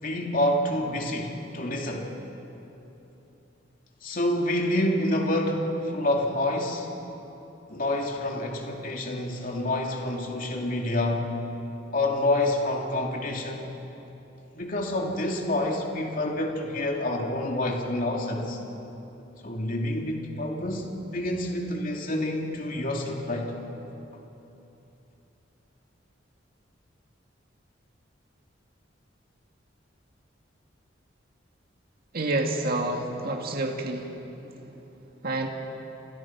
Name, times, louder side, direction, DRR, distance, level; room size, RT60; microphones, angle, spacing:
voice 1, 0.0-2.1 4.0-6.9 7.7-11.4 11.9-13.7 14.5-18.6 19.4-20.9 21.1-23.5, left 1 dB, 45° left, 1 dB, 2.9 m, -28 dB
voice 2, 32.1-34.1 35.2-35.5, right 2 dB, 50° right, 2 dB, 2.1 m, -28 dB
28.5 x 28.5 x 6.0 m, 3.0 s
head